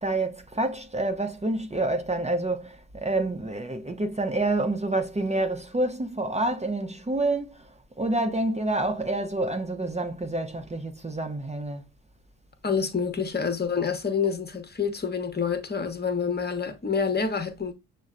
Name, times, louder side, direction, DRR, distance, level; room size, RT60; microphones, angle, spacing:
voice 1, 0.0-7.7 8.0-11.8, right 2 dB, 15° right, 0.7 m, -28 dB
voice 2, 12.6-17.7, left 6 dB, 25° left, 1.1 m, -27 dB
6.2 x 2.2 x 2.5 m
hypercardioid pair, 50°, 42 cm